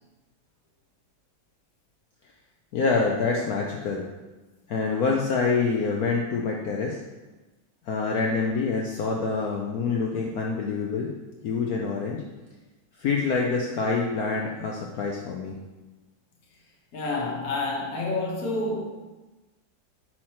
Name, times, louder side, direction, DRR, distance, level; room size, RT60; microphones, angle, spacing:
voice 1, 2.7-4.0 4.7-7.0 7.9-11.1 11.4-12.2 13.0-15.6, left 4 dB, 75° left, -1 dB, 0.8 m, -26 dB
voice 2, 16.9-18.9, left 2 dB, 50° left, -1 dB, 1.4 m, -28 dB
5.8 x 4.6 x 4.3 m, 1.2 s
omnidirectional pair, 2.3 m